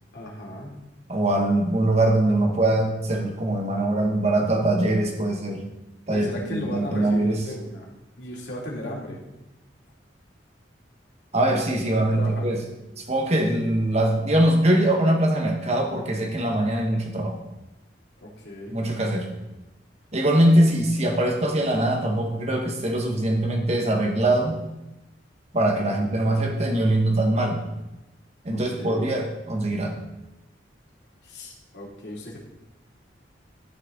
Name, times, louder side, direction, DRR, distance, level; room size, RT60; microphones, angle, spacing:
voice 1, 0.1-0.8 6.1-7.9 8.2-9.2 12.0-12.5 18.2-18.8 25.9-26.0 28.5-29.1 31.2-32.4, left 1 dB, 70° left, -4 dB, 2.8 m, -36 dB
voice 2, 1.1-5.6 6.1-7.4 11.3-12.6 13.0-17.4 18.7-19.3 20.1-24.6 25.5-27.6 28.4-30.0, right 1 dB, 35° right, 2 dB, 1.6 m, -22 dB
12.5 x 6.7 x 4.0 m, 0.95 s
head